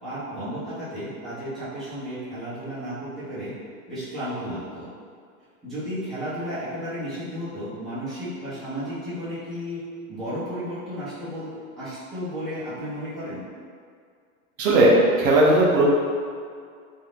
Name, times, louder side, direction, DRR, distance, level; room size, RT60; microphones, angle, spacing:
voice 1, 0.0-3.5 3.9-4.9 5.6-9.8 10.1-11.5 11.8-13.4, equal, ahead, -17 dB, 0.7 m, -33 dB
voice 2, 14.6-15.9, right 1 dB, 65° right, -3 dB, 0.7 m, -17 dB
2.6 x 2.3 x 3.2 m, 2.1 s
supercardioid pair, 160°, 44 cm